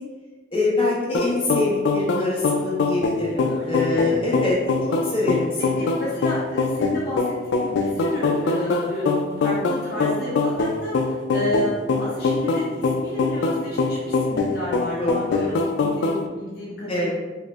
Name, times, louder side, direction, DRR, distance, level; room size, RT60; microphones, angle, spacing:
voice 1, 0.5-4.6 4.9-5.8 15.0-15.5 16.9-17.1, left 2 dB, 30° left, -6 dB, 1.0 m, -25 dB
sound 1, 1.1-16.2, left 3 dB, 80° left, 0.3 m, -23 dB
voice 2, 3.5-4.2 5.8-17.1, left 1 dB, 60° left, -6 dB, 0.7 m, -31 dB
4.3 x 2.6 x 2.4 m, 1.2 s
head